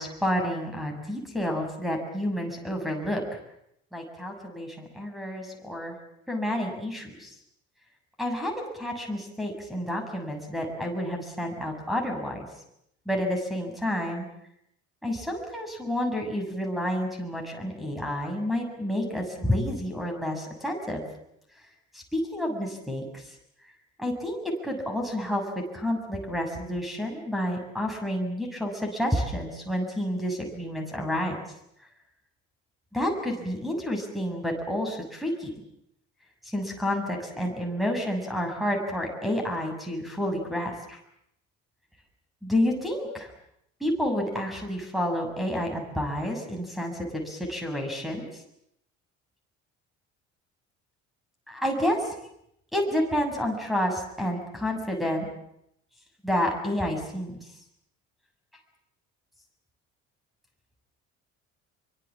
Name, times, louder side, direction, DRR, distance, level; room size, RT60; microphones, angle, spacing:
voice 1, 0.0-3.2 3.9-6.0 6.3-7.3 8.2-12.4 13.0-14.3 15.0-21.0 21.9-23.2 24.0-31.4 32.9-35.5 36.4-41.0 42.4-43.3 43.8-48.4 51.5-52.1 52.7-55.3 56.2-57.4, equal, ahead, 0 dB, 6.7 m, -29 dB
25.0 x 24.0 x 7.4 m, 0.77 s
figure-of-eight pair, 55°, 38 cm